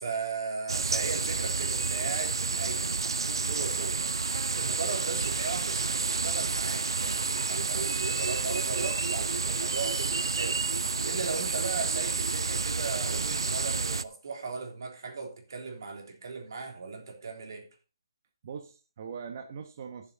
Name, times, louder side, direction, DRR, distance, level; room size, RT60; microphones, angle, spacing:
voice 1, 0.0-4.1 4.5-10.6 11.0-17.7, right 4 dB, 55° right, 3.4 m, -37 dB
sound 1, 0.7-14.0, right 4 dB, 85° right, 0.6 m, -30 dB
voice 2, 7.6-7.9 18.4-20.1, right 6 dB, 40° right, 1.2 m, -42 dB
13.5 x 7.5 x 4.1 m
hypercardioid pair, 165°, 2 cm